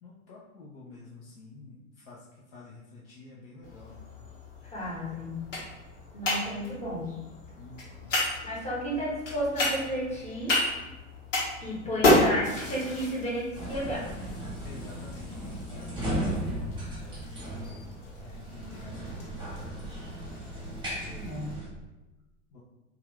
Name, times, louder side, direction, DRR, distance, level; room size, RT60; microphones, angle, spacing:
voice 1, 0.0-4.1 7.6-8.2 14.6-17.4 18.2-19.9 22.5-22.6, left 3 dB, 50° left, -5 dB, 0.6 m, -49 dB
sound 1, 3.6-21.5, left 1 dB, 70° left, 1.1 m, -32 dB
voice 2, 4.6-5.4 6.1-7.1 8.4-10.6 11.6-14.1 21.0-21.6, equal, 15° left, -5 dB, 1.1 m, -33 dB
sound 2, 13.5-21.7, right 1 dB, 10° right, 1.0 m, -36 dB
2.7 x 2.3 x 3.2 m, 1.1 s
figure-of-eight pair, 80°, 39 cm